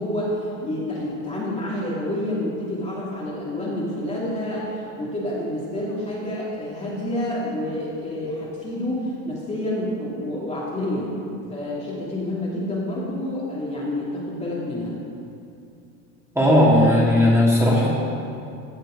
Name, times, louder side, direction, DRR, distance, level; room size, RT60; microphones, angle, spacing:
voice 1, 0.0-11.1 11.5-14.9, left 1 dB, 15° left, -7 dB, 2.7 m, -28 dB
voice 2, 16.3-17.9, left 1 dB, 5° right, -6 dB, 3.1 m, -16 dB
16.0 x 6.6 x 5.1 m, 2.6 s
supercardioid pair, 110°, 39 cm